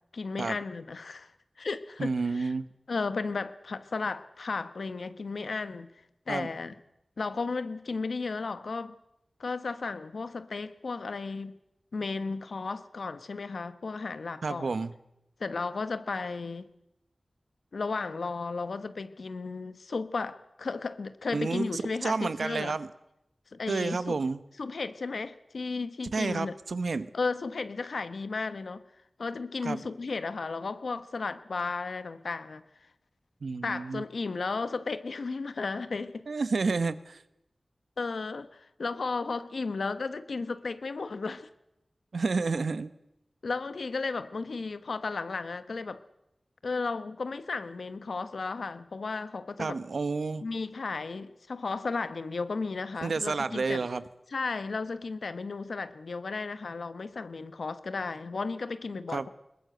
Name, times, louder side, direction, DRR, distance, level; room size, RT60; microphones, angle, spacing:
voice 1, 0.1-1.3 1.6-2.5 2.9-5.9 6.3-6.8 7.2-8.9 9.4-11.5 11.9-14.8 15.4-16.7 17.7-22.7 23.5-24.2 24.6-26.5 27.1-28.8 29.2-32.6 33.6-36.2 38.0-41.5 43.4-46.0 46.6-49.8 50.4-53.9 54.3-59.3, left 4 dB, 85° left, 1.2 m, -34 dB
voice 2, 2.0-2.7 6.3-6.5 14.4-14.9 21.3-22.9 23.7-24.4 26.1-27.1 29.6-29.8 33.4-34.0 36.3-37.2 42.1-42.9 49.6-50.5 53.0-54.0 59.1-59.3, right 4 dB, 85° right, 1.0 m, -30 dB
21.5 x 20.5 x 7.9 m
cardioid pair, 40°, 0 cm